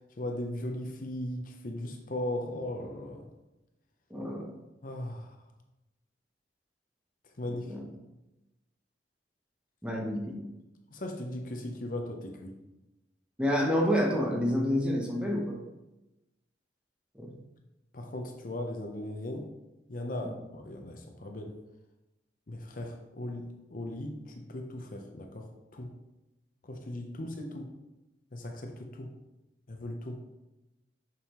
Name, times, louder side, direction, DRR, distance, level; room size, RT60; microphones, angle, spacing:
voice 1, 0.2-3.3 4.8-5.3 7.4-7.7 10.9-12.6 17.9-19.5 19.9-21.6 22.5-25.9 26.6-27.7 28.3-29.1 29.7-30.2, left 1 dB, 50° left, 3 dB, 0.7 m, -38 dB
voice 2, 4.1-4.5 7.5-7.8 9.8-10.4 13.4-15.6 17.1-17.3 20.2-20.3, equal, 5° right, -1 dB, 0.9 m, -29 dB
7.2 x 5.4 x 3.0 m, 0.99 s
head